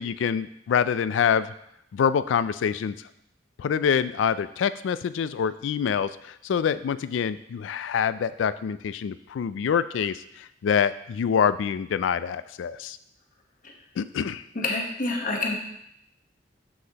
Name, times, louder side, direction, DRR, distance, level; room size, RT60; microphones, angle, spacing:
voice 1, 0.0-1.5 1.9-3.0 3.6-13.0 14.0-14.4, left 7 dB, 85° left, 15 dB, 0.3 m, -26 dB
voice 2, 14.5-15.6, left 2 dB, 45° left, 1 dB, 1.1 m, -27 dB
7.4 x 6.3 x 2.9 m, 0.77 s
head